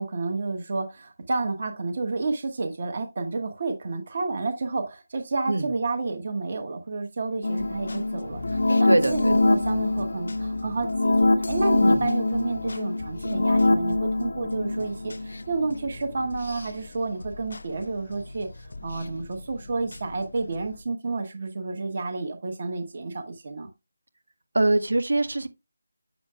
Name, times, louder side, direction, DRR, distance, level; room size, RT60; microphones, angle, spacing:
voice 1, 0.0-23.7, right 3 dB, 30° right, 1.1 m, -30 dB
sound 1, 7.4-16.9 17.2-20.1 20.5-20.6, left 2 dB, 65° left, 0.8 m, -25 dB
voice 2, 8.9-9.3 11.8-12.0 24.5-25.5, right 2 dB, 80° right, 1.6 m, -23 dB
8.7 x 7.1 x 2.4 m
figure-of-eight pair, 180°, 0 cm